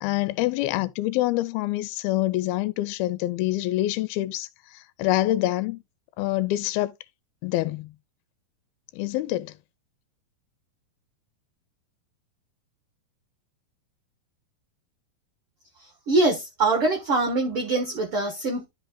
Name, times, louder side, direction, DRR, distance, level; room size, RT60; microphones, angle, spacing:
voice 1, 0.0-4.5 4.7-5.8 6.2-6.9 7.4-7.9 8.9-9.5, left 16 dB, 85° left, 2.5 m, -26 dB
voice 2, 16.1-18.6, right 3 dB, 55° right, 1.7 m, -23 dB
12.5 x 5.4 x 2.3 m
omnidirectional pair, 4.2 m